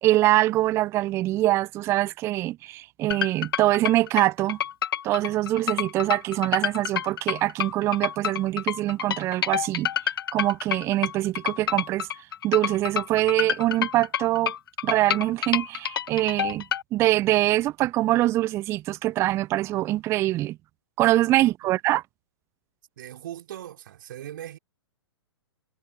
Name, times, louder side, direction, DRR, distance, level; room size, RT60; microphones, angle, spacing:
voice 1, 0.0-4.6 5.0-9.9 10.3-12.1 12.4-14.5 14.8-16.6 16.9-20.6 21.0-22.0, right 16 dB, 20° right, 0.4 m, -24 dB
sound 1, 3.1-16.8, left 9 dB, 60° left, 0.6 m, -28 dB
voice 2, 23.0-24.6, right 11 dB, 50° right, 4.1 m, -39 dB
figure-of-eight pair, 115°, 14 cm